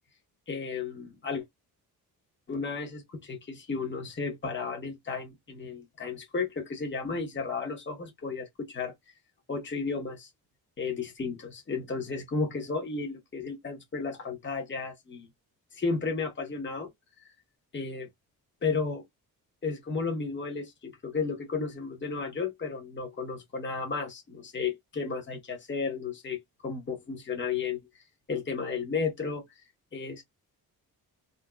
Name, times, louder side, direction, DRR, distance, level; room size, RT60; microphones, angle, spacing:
voice 1, 0.5-1.4 2.5-8.9 9.5-10.3 10.8-15.3 15.7-16.9 17.7-18.1 18.6-19.0 19.6-27.8 28.3-29.4 29.9-30.2, left 4 dB, 30° left, 1.0 m, -33 dB
2.8 x 2.6 x 2.2 m
cardioid pair, 100°, 38 cm